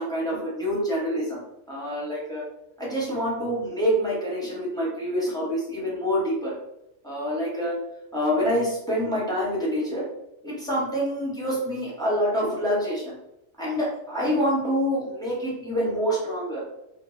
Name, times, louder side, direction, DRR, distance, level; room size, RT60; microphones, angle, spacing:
voice 1, 0.0-2.4 2.8-6.5 7.0-7.7 8.1-10.1 10.4-13.2 13.6-16.6, equal, 5° left, -7 dB, 0.6 m, -26 dB
2.1 x 2.0 x 3.2 m, 0.85 s
omnidirectional pair, 1.2 m